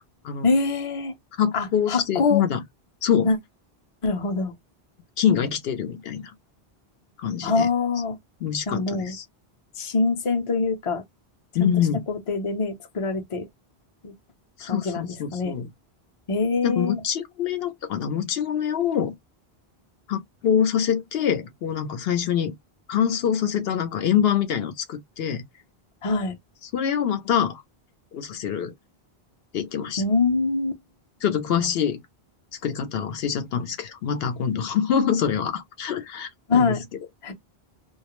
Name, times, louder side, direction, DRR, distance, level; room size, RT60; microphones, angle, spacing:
voice 1, 0.4-1.2 1.5-2.4 3.2-3.4 4.0-4.5 7.4-8.2 8.7-9.2 9.8-11.0 11.6-11.7 12.1-13.5 14.0-14.1 14.7-15.6 16.3-17.0 26.0-26.4 30.0-30.7 36.5-36.9 37.2-37.3, left 4 dB, 40° left, 0.6 m, -24 dB
voice 2, 1.4-2.6 3.0-3.3 5.2-6.3 7.2-7.7 8.4-9.2 11.5-12.0 14.6-15.7 16.6-19.1 20.1-22.5 22.9-25.4 26.7-27.6 28.1-28.7 29.5-30.0 31.2-32.0 32.6-36.8, left 8 dB, 75° left, 0.8 m, -25 dB
2.3 x 2.0 x 2.9 m
omnidirectional pair, 1.0 m